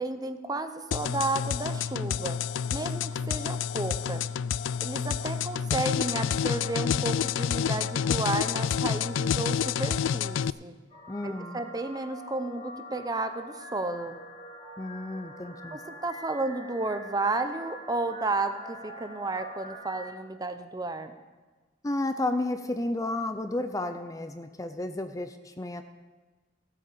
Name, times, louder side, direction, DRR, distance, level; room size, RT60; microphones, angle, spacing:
voice 1, 0.0-2.4 2.7-4.2 4.8-10.7 11.2-14.2 15.7-21.2, right 2 dB, 20° right, 9 dB, 0.8 m, -32 dB
sound 1, 0.9-10.5, left 7 dB, 85° left, 0.4 m, -29 dB
sound 2, 10.9-20.1, left 1 dB, 40° left, 3.5 m, -45 dB
voice 2, 11.1-11.6 14.8-15.8 21.8-25.8, left 2 dB, 20° left, 8 dB, 0.6 m, -32 dB
16.0 x 8.6 x 6.9 m, 1.3 s
head